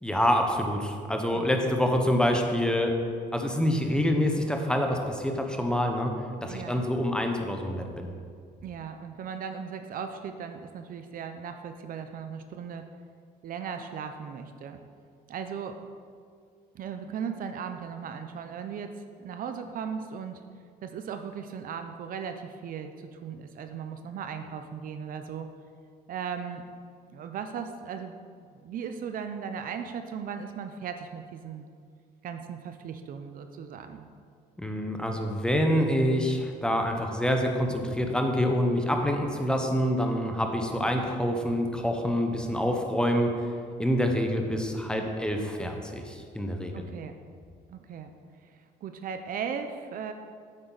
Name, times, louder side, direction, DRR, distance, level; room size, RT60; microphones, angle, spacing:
voice 1, 0.0-3.0 3.3-6.1 6.4-8.1 34.6-43.4 43.8-46.8, equal, 5° left, 3 dB, 1.0 m, -26 dB
voice 2, 1.3-1.7 6.5-6.8 8.6-12.8 13.4-14.8 15.3-15.8 16.7-20.4 20.8-25.5 26.1-26.6 27.1-28.2 28.5-31.7 32.2-34.1 46.7-47.1 47.7-48.1 48.5-50.1, right 7 dB, 55° right, 7 dB, 0.6 m, -37 dB
8.9 x 7.7 x 4.0 m, 2.1 s
cardioid pair, 110°, 17 cm